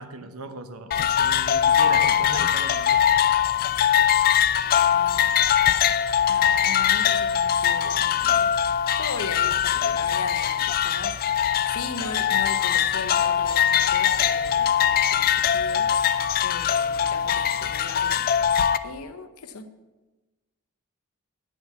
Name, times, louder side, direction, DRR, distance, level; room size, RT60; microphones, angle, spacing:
voice 1, 0.0-3.0, right 3 dB, 75° right, 0.9 m, -38 dB
sound 1, 0.9-18.8, left 9 dB, 45° left, 0.4 m, -22 dB
voice 2, 4.9-5.5 6.3-8.6 9.0-11.2 11.6-15.9 16.4-18.3 18.8-19.8, left 4 dB, 85° left, 0.8 m, -38 dB
9.5 x 5.9 x 7.1 m
head